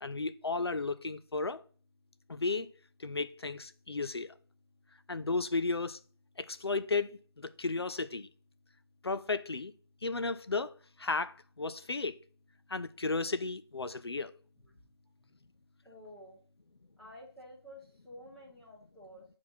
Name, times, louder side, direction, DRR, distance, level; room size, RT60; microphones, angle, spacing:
voice 1, 0.0-1.6 2.3-2.7 3.0-4.3 5.1-6.0 6.4-8.3 9.0-9.7 10.0-10.7 11.0-12.1 12.7-14.3, left 3 dB, 85° left, 0.6 m, -34 dB
voice 2, 15.8-16.4 17.0-19.2, equal, 5° left, 1.3 m, -51 dB
5.9 x 4.9 x 5.4 m
figure-of-eight pair, 160°, 13 cm